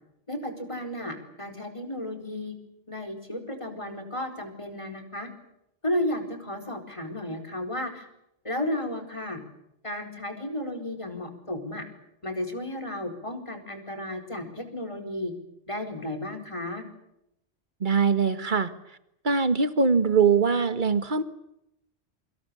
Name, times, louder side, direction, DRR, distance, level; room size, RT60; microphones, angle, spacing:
voice 1, 0.3-2.5 2.9-5.3 5.8-8.1 8.4-9.4 9.8-11.8 12.2-15.3 15.7-16.8, left 1 dB, 25° left, 7 dB, 4.6 m, -33 dB
voice 2, 17.8-19.0 19.2-21.2, right 5 dB, 45° right, 11 dB, 1.8 m, -22 dB
28.0 x 25.0 x 7.0 m, 0.81 s
omnidirectional pair, 1.1 m